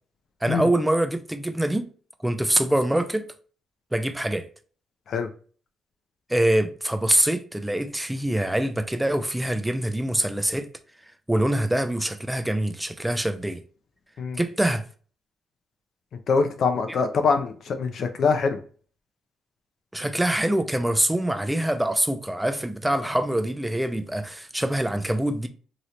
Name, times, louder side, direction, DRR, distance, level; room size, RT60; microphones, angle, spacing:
voice 1, 0.4-1.9 2.2-3.2 3.9-4.5 6.3-10.7 11.3-13.6 14.4-14.8 19.9-25.5, right 1 dB, 5° right, 0.4 m, -24 dB
voice 2, 16.3-18.6, left 5 dB, 60° left, 0.5 m, -23 dB
3.0 x 2.9 x 2.5 m
cardioid pair, 90°, 0 cm